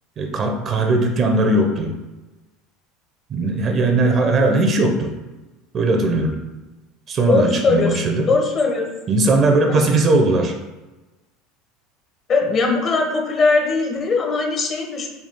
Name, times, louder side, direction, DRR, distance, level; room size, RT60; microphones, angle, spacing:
voice 1, 0.2-1.9 3.3-5.1 5.7-6.4 7.1-8.3 9.1-10.5, right 2 dB, 40° right, 3 dB, 0.6 m, -18 dB
voice 2, 7.3-8.9 9.7-9.8 12.3-15.1, left 3 dB, 40° left, 2 dB, 0.9 m, -20 dB
4.1 x 2.3 x 3.6 m, 1.1 s
hypercardioid pair, 85°, 0 cm